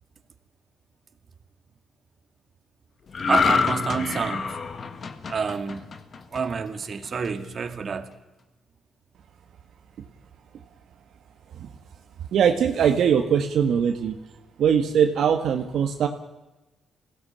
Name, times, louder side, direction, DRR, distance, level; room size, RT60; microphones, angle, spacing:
sound 1, 3.1-6.6 7.0-7.3, left 5 dB, 45° left, 1.7 m, -26 dB
voice 1, 3.3-4.6 5.3-5.9 6.3-8.1, right 5 dB, 45° right, 7 dB, 2.2 m, -28 dB
voice 2, 12.3-14.2 14.6-16.1, right 8 dB, 70° right, 5 dB, 1.7 m, -21 dB
21.5 x 17.0 x 8.9 m, 1.1 s
cardioid pair, 90°, 0 cm